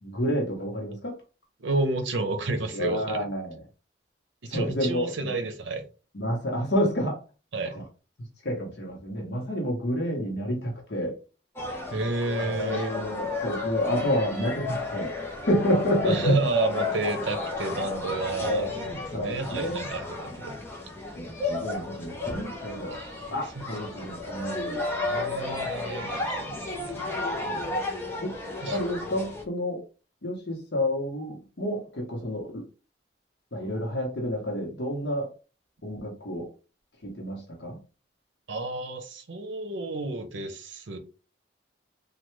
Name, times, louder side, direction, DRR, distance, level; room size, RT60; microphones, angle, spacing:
voice 1, 0.0-1.2 2.7-3.6 4.5-5.3 6.1-7.2 7.7-7.9 8.4-11.2 12.4-16.4 18.4-18.7 19.1-19.8 21.1-23.0 23.3-24.8 27.5-27.7 28.2-29.8 30.2-32.6 33.5-35.3 35.8-36.5 37.0-37.8, equal, 65° left, 0.9 m, -29 dB
voice 2, 1.6-3.2 4.4-5.8 7.5-7.7 11.9-12.9 16.0-20.5 22.9-23.3 25.0-27.4 28.6-28.8 38.5-41.0, right 3 dB, 85° right, 0.7 m, -31 dB
sound 1, 11.6-29.4, left 3 dB, 10° left, 0.6 m, -33 dB
3.2 x 2.2 x 3.1 m
head